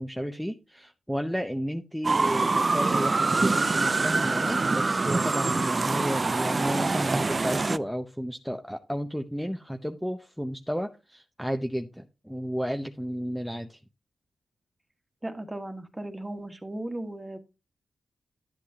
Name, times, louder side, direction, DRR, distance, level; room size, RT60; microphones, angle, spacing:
voice 1, 0.0-13.8, equal, ahead, 6 dB, 0.8 m, -32 dB
sound 1, 2.0-7.8, right 3 dB, 35° right, 0.5 m, -25 dB
voice 2, 15.2-17.4, right 1 dB, 15° right, 7 dB, 1.7 m, -36 dB
11.5 x 8.3 x 2.9 m, 0.28 s
cardioid pair, 75°, 0 cm